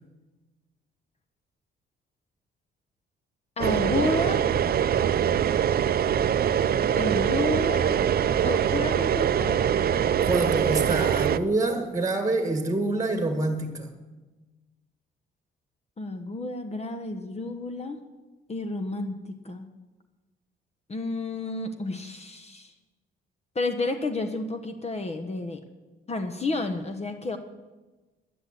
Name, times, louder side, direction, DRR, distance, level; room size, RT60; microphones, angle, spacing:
voice 1, 3.6-4.5 6.9-7.9 8.4-9.6 16.0-18.0 18.5-19.7 20.9-22.7 23.5-25.6 26.1-27.4, left 2 dB, 30° left, 1.1 m, -31 dB
sound 1, 3.6-11.4, right 9 dB, 50° right, 0.6 m, -23 dB
voice 2, 10.2-13.9, right 2 dB, 15° right, 1.7 m, -26 dB
11.0 x 9.8 x 8.1 m
cardioid pair, 90°, 20 cm